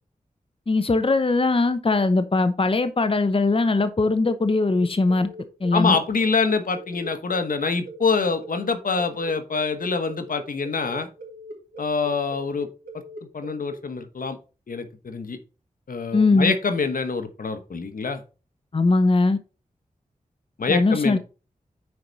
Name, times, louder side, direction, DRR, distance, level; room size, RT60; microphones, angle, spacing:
voice 1, 0.7-5.3 5.6-6.0 16.1-16.5 18.7-19.4 20.7-21.2, left 3 dB, 40° left, 0.8 m, -20 dB
sound 1, 3.9-13.8, equal, 90° right, 3.3 m, -40 dB
voice 2, 5.7-11.1 11.8-12.7 13.3-14.4 14.7-15.4 15.9-18.2 20.6-21.2, left 4 dB, 75° left, 1.3 m, -25 dB
9.5 x 4.7 x 4.1 m
cardioid pair, 45°, 14 cm